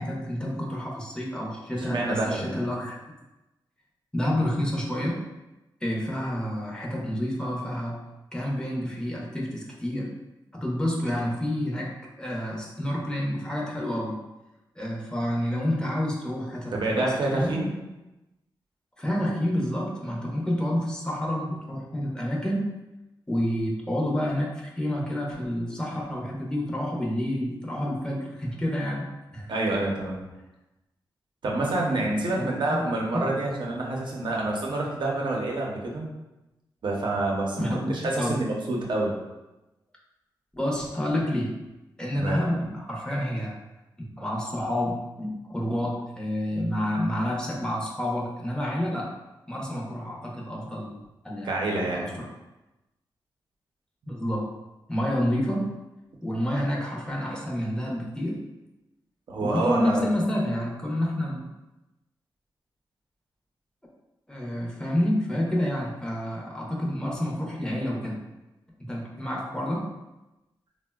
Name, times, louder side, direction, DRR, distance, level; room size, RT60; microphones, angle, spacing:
voice 1, 0.0-3.0 4.1-5.2 5.8-8.0 8.3-10.1 10.5-11.9 12.2-14.2 14.8-17.5 19.0-22.6 23.3-29.1 29.3-29.5 32.0-32.1 32.4-32.8 33.1-33.3 37.6-38.4 40.6-41.5 42.0-43.5 44.0-49.1 49.5-52.3 54.1-54.5 54.9-55.7 56.2-58.4 59.4-61.5 64.3-68.2 68.8-69.9, equal, 10° left, -3 dB, 0.7 m, -29 dB
voice 2, 1.9-2.6 16.7-17.7 29.5-30.2 31.4-36.1 36.8-39.1 42.1-42.4 51.4-52.0 59.3-60.0, right 2 dB, 65° right, -2 dB, 0.7 m, -27 dB
3.5 x 2.1 x 2.3 m, 1.0 s
cardioid pair, 60°, 9 cm